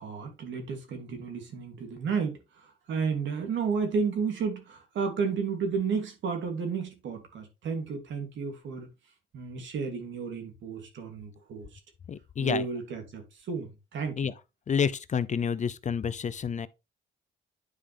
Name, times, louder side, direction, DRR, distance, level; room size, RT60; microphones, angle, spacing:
voice 1, 0.0-8.9 9.3-11.8 12.4-14.3, right 5 dB, 70° right, 2.7 m, -32 dB
voice 2, 12.1-12.6 14.2-14.3 14.7-16.7, left 7 dB, 35° left, 0.5 m, -29 dB
9.6 x 5.1 x 3.4 m
cardioid pair, 90°, 20 cm